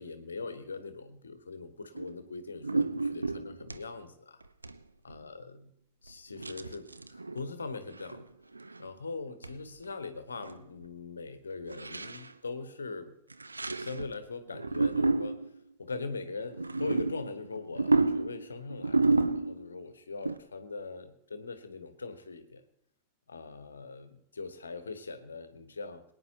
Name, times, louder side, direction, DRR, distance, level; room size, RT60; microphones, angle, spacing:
voice 1, 0.0-4.4 5.0-5.7 6.0-8.3 8.8-13.1 13.8-15.4 15.8-22.6 23.3-26.0, left 4 dB, 75° left, 10 dB, 1.2 m, -41 dB
sound 1, 1.9-2.2 2.6-3.9 4.4-4.8 5.1-5.2 6.4-7.5 7.9-8.3 8.5-8.9 9.4-9.6 9.9-10.0 10.2-10.6 10.8-10.9 11.7-12.3 13.3-14.1 14.5-15.6 16.5-19.8 20.2-20.4, right 3 dB, 80° right, 0.5 m, -30 dB
22.5 x 9.6 x 2.9 m, 0.72 s
figure-of-eight pair, 90°, 0 cm